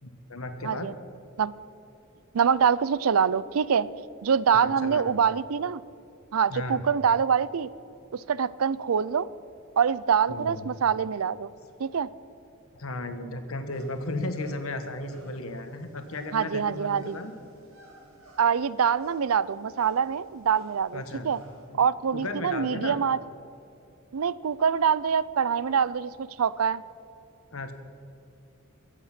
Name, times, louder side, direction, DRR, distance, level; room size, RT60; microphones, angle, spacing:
voice 1, 0.0-0.9 4.5-5.2 6.5-6.8 10.3-10.7 12.7-17.3 20.9-21.3 21.7-21.8 22.1-23.0 27.5-27.7, left 2 dB, 80° left, 8 dB, 1.2 m, -35 dB
voice 2, 2.3-3.9 4.2-5.8 6.3-7.7 8.1-9.3 9.8-11.5 11.8-12.1 16.3-17.2 18.4-21.4 21.7-23.2 24.1-26.8, right 7 dB, 85° right, 19 dB, 0.5 m, -25 dB
sound 1, 13.7-21.7, right 2 dB, 70° right, 2.7 m, -55 dB
22.5 x 8.1 x 5.9 m, 2.7 s
head